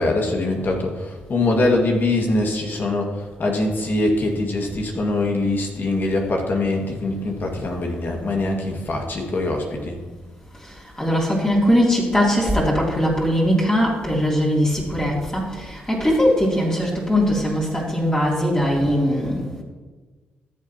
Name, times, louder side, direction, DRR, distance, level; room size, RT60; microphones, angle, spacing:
voice 1, 0.0-10.0, left 2 dB, 50° left, 1 dB, 2.0 m, -23 dB
voice 2, 11.0-19.6, equal, 15° left, -5 dB, 3.0 m, -20 dB
14.0 x 7.4 x 2.9 m, 1.3 s
supercardioid pair, 55°, 4 cm